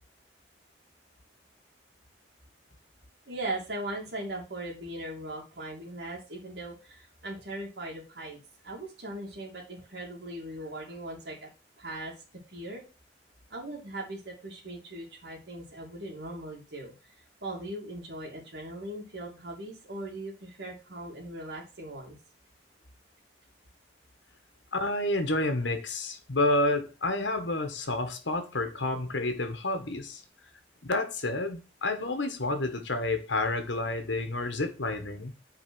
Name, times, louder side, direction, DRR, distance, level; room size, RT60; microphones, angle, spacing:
voice 1, 3.3-11.5 11.8-12.1 12.5-12.8 13.5-16.9 17.4-22.2, right 1 dB, 65° right, 2.6 m, -39 dB
voice 2, 24.7-30.2 30.8-35.3, left 2 dB, 85° left, 1.5 m, -29 dB
6.2 x 4.8 x 6.2 m
head